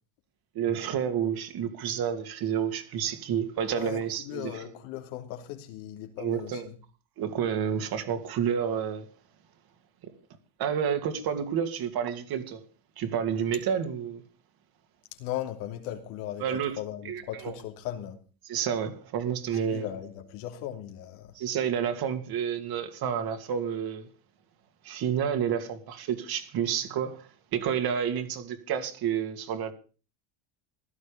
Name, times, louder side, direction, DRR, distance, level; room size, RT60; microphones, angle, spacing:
voice 1, 0.5-4.5 6.2-6.7 7.2-9.1 10.6-12.6 13.0-14.2 16.4-16.8 17.0-17.5 18.5-19.9 21.3-24.1 24.8-29.7, right 8 dB, 50° right, 2.6 m, -30 dB
voice 2, 3.7-6.7 15.1-16.4 16.8-18.2 19.6-21.4, left 12 dB, 80° left, 3.1 m, -37 dB
16.0 x 12.5 x 5.1 m
cardioid pair, 140°, 48 cm